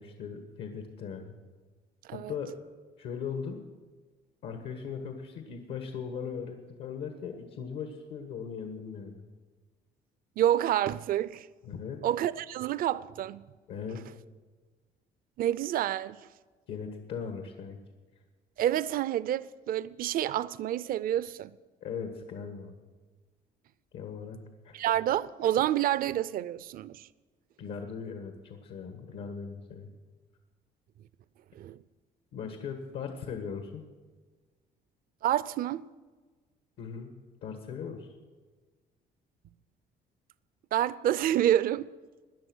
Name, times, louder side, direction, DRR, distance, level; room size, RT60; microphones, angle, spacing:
voice 1, 0.0-1.4 2.1-2.5 3.0-3.6 4.4-9.2 11.6-12.0 13.7-14.0 16.7-17.8 21.8-22.7 23.9-24.4 24.6-24.7 27.6-29.9 32.3-33.8 36.8-37.1 37.4-38.1, left 6 dB, 80° left, 1.5 m, -39 dB
voice 2, 10.4-11.5 12.0-13.5 15.4-16.2 18.6-21.5 24.7-27.1 31.5-31.8 35.2-35.9 40.7-41.9, right 12 dB, 60° right, 0.5 m, -28 dB
18.0 x 10.5 x 6.2 m
cardioid pair, 110°, 17 cm